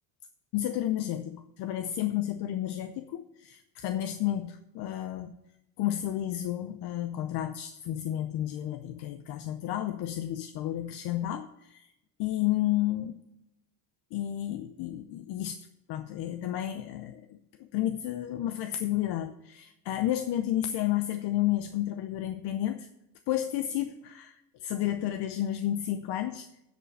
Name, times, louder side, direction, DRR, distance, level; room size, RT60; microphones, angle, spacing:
voice 1, 0.5-5.3 5.8-11.9 12.2-13.2 14.1-17.4 17.7-22.9 23.3-26.5, left 13 dB, 60° left, 9 dB, 0.7 m, -31 dB
9.7 x 5.3 x 7.6 m, 0.87 s
cardioid pair, 140°, 46 cm